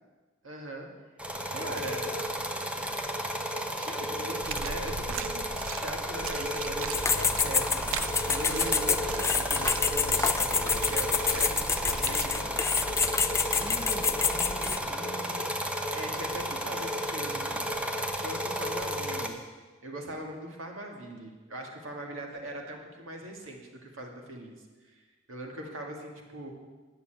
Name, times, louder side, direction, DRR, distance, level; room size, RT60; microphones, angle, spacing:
voice 1, 0.4-0.9 1.5-2.1 3.8-12.5 15.9-17.7 18.2-19.4 19.8-24.5 24.9-26.5, right 1 dB, 70° right, 1 dB, 2.0 m, -40 dB
sound 1, 1.2-19.3, equal, 5° right, 0.9 m, -33 dB
voice 2, 1.5-2.3 13.5-15.6 21.9-22.2, left 1 dB, 30° left, 2 dB, 1.7 m, -44 dB
sound 2, 4.4-12.3, right 6 dB, 90° right, 0.6 m, -40 dB
sound 3, 6.9-14.8, left 5 dB, 15° left, 0.4 m, -28 dB
10.5 x 7.0 x 8.9 m, 1.3 s
head